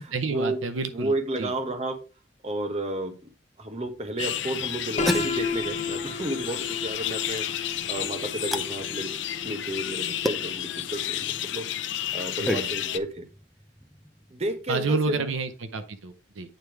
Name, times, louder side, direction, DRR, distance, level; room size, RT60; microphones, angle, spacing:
voice 1, 0.0-1.5 12.4-12.7 14.7-16.5, right 3 dB, 90° right, 9 dB, 0.7 m, -30 dB
voice 2, 0.9-2.0 2.4-3.2 3.6-7.5 7.9-9.1 9.4-11.7 12.1-13.3 14.3-15.2, right 1 dB, 35° right, 6 dB, 1.0 m, -31 dB
sound 1, 3.6-15.6, equal, ahead, 0.5 m, -37 dB
sound 2, 4.2-13.0, left 11 dB, 70° left, 0.5 m, -32 dB
Piano, 5.0-10.8, left 4 dB, 35° left, 0.9 m, -34 dB
8.9 x 3.3 x 4.5 m, 0.34 s
head